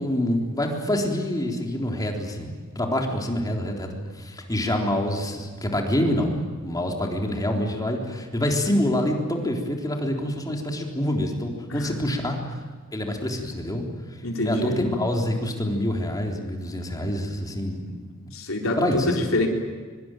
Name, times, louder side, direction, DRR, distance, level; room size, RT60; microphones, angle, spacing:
voice 1, 0.0-3.9 4.1-12.4 12.9-13.9 14.4-17.8 18.8-19.2, left 1 dB, 20° left, 1 dB, 3.8 m, -26 dB
voice 2, 14.2-14.8 17.9-19.5, left 1 dB, 75° left, 1 dB, 4.2 m, -27 dB
25.0 x 23.5 x 9.1 m, 1.5 s
head